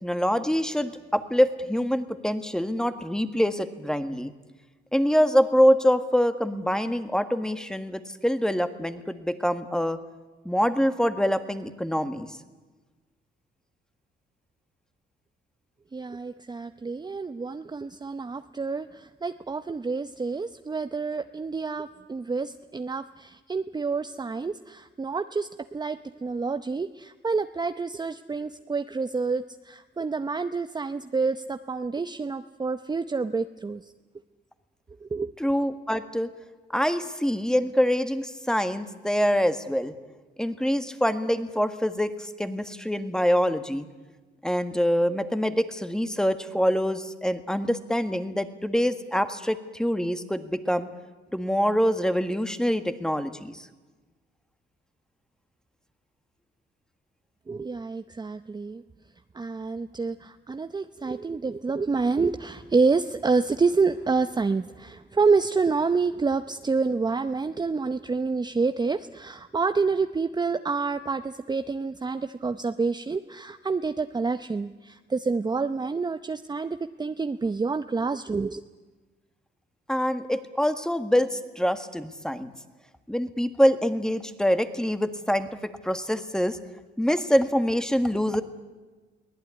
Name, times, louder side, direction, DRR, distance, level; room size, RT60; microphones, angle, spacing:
voice 1, 0.0-4.3 4.9-10.0 10.4-12.3 35.4-36.3 36.7-39.9 40.4-43.8 44.4-50.9 51.3-53.7 79.9-82.5 83.1-86.6 87.0-88.4, equal, 5° left, 9 dB, 1.7 m, -25 dB
voice 2, 15.9-33.9 35.0-35.3 57.5-58.8 59.3-78.6, right 4 dB, 20° right, 9 dB, 0.7 m, -28 dB
23.5 x 17.0 x 9.7 m, 1.3 s
cardioid pair, 90°, 20 cm